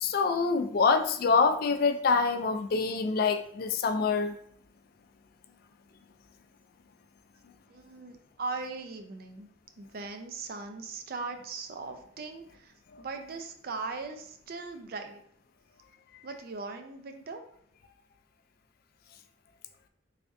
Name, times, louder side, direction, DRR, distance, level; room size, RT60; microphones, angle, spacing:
voice 1, 0.0-4.3 12.9-13.0, left 4 dB, 55° left, 6 dB, 0.4 m, -26 dB
voice 2, 7.7-9.5 9.8-15.2 16.2-17.4, right 3 dB, 55° right, 5 dB, 0.4 m, -39 dB
3.5 x 3.3 x 2.6 m, 0.66 s
head